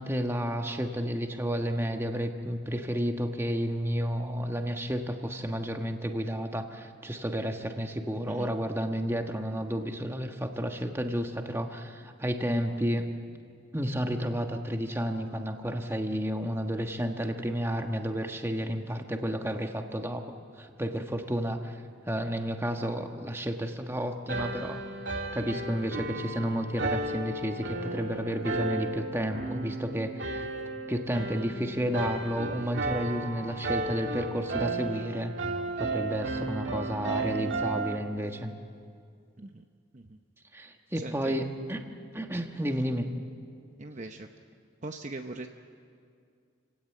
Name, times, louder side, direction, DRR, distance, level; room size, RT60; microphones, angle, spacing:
voice 1, 0.0-13.1 13.7-24.8 25.3-30.5 30.9-35.3 35.8-38.5 40.5-41.9 42.1-43.1, equal, 10° right, 4 dB, 1.3 m, -31 dB
sound 1, 24.3-38.0, right 2 dB, 65° right, 2.4 m, -34 dB
voice 2, 40.9-41.4 43.8-44.3 44.8-45.5, right 2 dB, 35° right, 5 dB, 0.8 m, -41 dB
28.5 x 16.5 x 9.0 m, 2.3 s
head